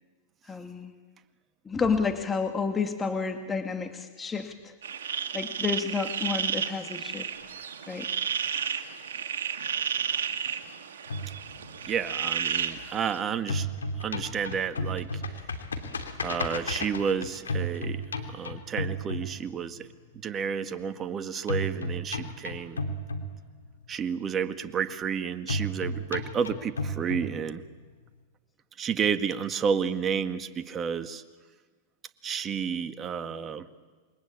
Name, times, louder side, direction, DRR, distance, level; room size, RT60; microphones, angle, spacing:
voice 1, 0.5-0.9 1.7-4.7 5.3-7.3 7.9-8.1, left 5 dB, 15° left, 5 dB, 2.2 m, -30 dB
sound 1, 4.8-13.2, right 8 dB, 75° right, 2.2 m, -32 dB
sound 2, 11.1-13.1 13.4-19.8 21.5-23.8 25.5-27.8, left 1 dB, 85° left, 2.9 m, -33 dB
voice 2, 11.8-13.7 14.0-15.2 16.2-19.9 20.2-22.8 23.9-27.6 28.8-31.2 32.2-33.7, right 7 dB, 25° right, 9 dB, 1.7 m, -31 dB
28.0 x 23.0 x 8.7 m, 1.4 s
hypercardioid pair, 105°, 0 cm